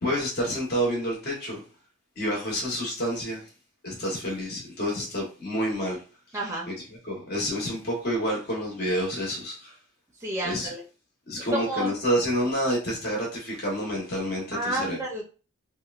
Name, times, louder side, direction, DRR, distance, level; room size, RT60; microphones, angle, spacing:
voice 1, 0.0-1.6 2.2-3.4 3.8-6.0 6.7-6.8 7.1-9.7 10.4-10.7 11.3-15.0, equal, 55° left, -3 dB, 1.0 m, -28 dB
voice 2, 6.3-6.7 10.2-10.8 11.4-11.9 14.5-15.2, right 1 dB, 15° right, -2 dB, 0.5 m, -30 dB
2.9 x 2.1 x 2.3 m, 0.35 s
head